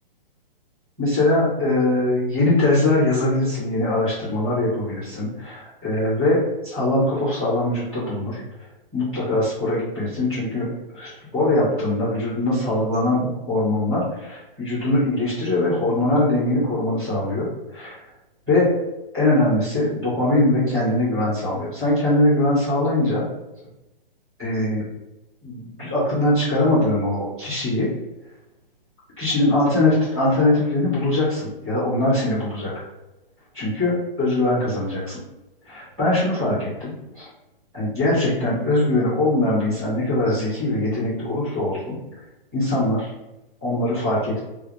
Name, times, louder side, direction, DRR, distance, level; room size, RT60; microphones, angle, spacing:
voice 1, 1.0-8.7 8.9-10.7 10.9-18.0 18.5-18.7 19.1-23.2 24.4-24.9 25.4-27.9 29.2-32.7 33.5-35.2 35.6-37.3 37.7-42.0 42.5-43.1 43.6-44.4, left 1 dB, 5° right, -16 dB, 0.3 m, -22 dB
2.2 x 2.2 x 3.5 m, 0.97 s
hypercardioid pair, 150°, 29 cm